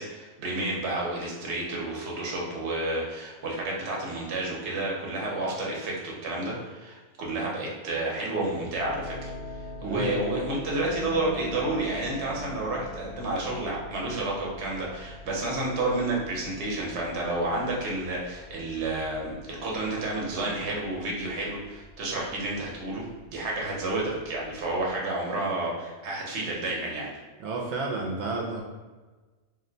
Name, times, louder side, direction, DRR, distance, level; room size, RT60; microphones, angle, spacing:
voice 1, 0.0-9.3 9.8-27.1, right 2 dB, 65° right, -3 dB, 1.0 m, -30 dB
sound 1, 8.4-24.9, left 1 dB, 80° left, 1.1 m, -43 dB
voice 2, 9.8-10.2 27.4-28.6, right 3 dB, 85° right, -1 dB, 1.0 m, -31 dB
2.6 x 2.1 x 3.8 m, 1.3 s
omnidirectional pair, 1.3 m